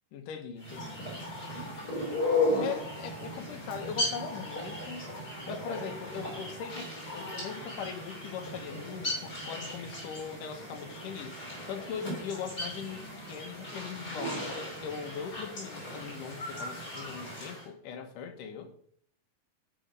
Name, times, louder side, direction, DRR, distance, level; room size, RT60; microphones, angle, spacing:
voice 1, 0.1-1.0 2.6-5.1 5.5-11.4 11.7-18.7, left 7 dB, 75° left, 2.7 m, -40 dB
sound 1, 0.6-17.6, left 2 dB, 30° left, 4.4 m, -36 dB
13.0 x 5.1 x 5.2 m
omnidirectional pair, 3.8 m